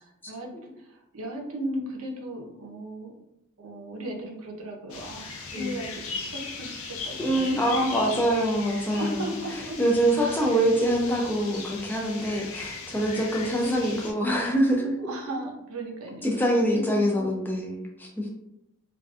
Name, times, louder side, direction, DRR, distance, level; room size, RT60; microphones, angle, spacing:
voice 1, 0.0-3.1 3.6-8.3 8.9-9.7 10.2-10.5 10.9-11.1 13.1-13.9 15.0-17.3, right 1 dB, 80° right, 1 dB, 0.6 m, -37 dB
sound 1, 4.9-14.1, left 4 dB, 85° left, 0.5 m, -38 dB
voice 2, 7.2-9.3 9.8-15.0 16.2-18.3, right 1 dB, 10° left, 0 dB, 0.3 m, -25 dB
2.4 x 2.3 x 2.4 m, 0.85 s
head